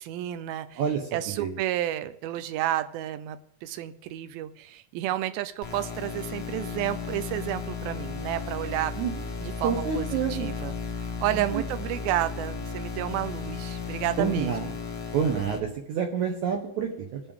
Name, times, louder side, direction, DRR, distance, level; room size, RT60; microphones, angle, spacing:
voice 1, 0.0-0.8 1.1-8.9 9.4-10.7 11.0-14.7, right 13 dB, 85° right, 12 dB, 2.4 m, -31 dB
voice 2, 0.8-1.1 1.4-1.6 9.0-9.1 9.6-10.5 11.3-11.6 14.2-14.7 15.1-17.2, right 7 dB, 70° right, 2 dB, 2.0 m, -28 dB
sound 1, 5.6-15.6, left 5 dB, 75° left, 1.0 m, -35 dB
20.0 x 7.0 x 3.6 m, 0.74 s
omnidirectional pair, 4.3 m